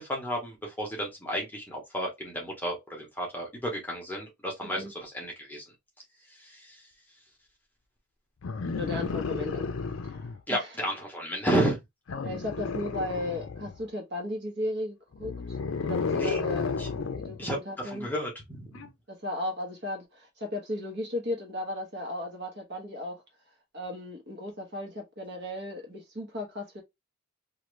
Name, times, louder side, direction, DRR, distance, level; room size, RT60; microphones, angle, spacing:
voice 1, 0.0-5.6 6.3-6.8 10.5-11.8 16.1-16.4 16.8-16.9 17.4-18.8, equal, 10° left, 0.9 m, -32 dB
voice 2, 4.6-4.9 8.7-9.7 10.0-10.2 10.5-10.7 12.2-15.6 15.8-16.7 17.2-18.1 19.1-23.2 23.7-26.8, left 1 dB, 50° right, 1.0 m, -35 dB
sound 1, 8.4-10.4 12.1-13.8 15.1-17.4 18.7-18.9, left 4 dB, 65° left, 0.5 m, -32 dB
2.7 x 2.5 x 3.1 m
head